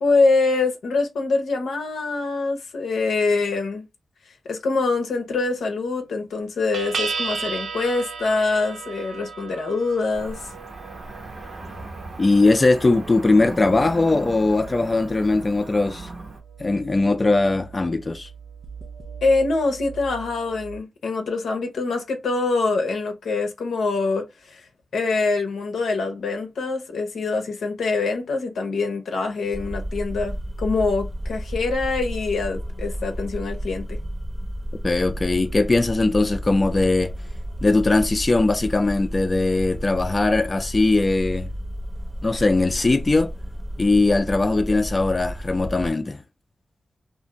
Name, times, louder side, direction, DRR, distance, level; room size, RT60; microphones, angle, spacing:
voice 1, 0.0-3.8 4.4-10.5 19.2-24.7 24.9-34.0, left 3 dB, 90° left, 0.6 m, -24 dB
sound 1, 5.0-6.1 6.7-20.8, right 5 dB, 85° right, 0.5 m, -37 dB
Cricket / Motor vehicle (road), 10.1-16.4, right 2 dB, 65° right, 0.9 m, -38 dB
voice 2, 12.2-16.1 16.6-18.3 34.8-37.1 37.6-41.5 42.2-43.3 43.8-46.2, left 2 dB, 40° left, 0.4 m, -20 dB
sound 2, 29.5-45.9, equal, 25° right, 0.8 m, -32 dB
2.5 x 2.5 x 2.9 m
cardioid pair, 40°, 0 cm